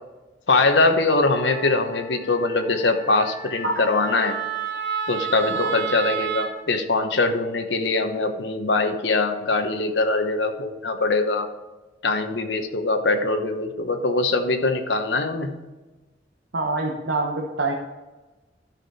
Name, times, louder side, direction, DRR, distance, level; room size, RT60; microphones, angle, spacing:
voice 1, 0.5-4.4 5.1-11.5 12.0-15.6, left 3 dB, 75° left, 6 dB, 1.0 m, -22 dB
Wind instrument woodwind instrument, 1.3-6.5, right 6 dB, 65° right, 2.2 m, -31 dB
voice 2, 16.5-17.7, right 2 dB, 90° right, 0 dB, 1.1 m, -25 dB
12.5 x 5.8 x 4.2 m, 1.1 s
head